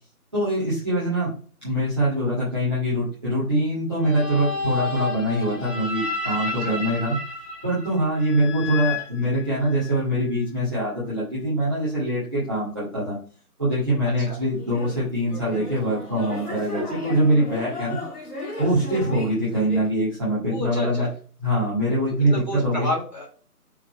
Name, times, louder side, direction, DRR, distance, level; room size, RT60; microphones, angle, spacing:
voice 1, 0.3-1.3 1.6-7.1 7.6-13.2 13.6-18.0 18.6-21.1 21.4-22.9, right 1 dB, 5° left, -11 dB, 1.4 m, -23 dB
sound 1, 4.0-10.0, left 3 dB, 50° left, 2.3 m, -31 dB
sound 2, 14.6-19.9, left 2 dB, 75° left, 2.2 m, -35 dB
voice 2, 20.5-21.1 22.1-23.3, equal, 30° left, -2 dB, 1.7 m, -30 dB
5.9 x 3.8 x 4.2 m, 0.40 s
figure-of-eight pair, 170°, 46 cm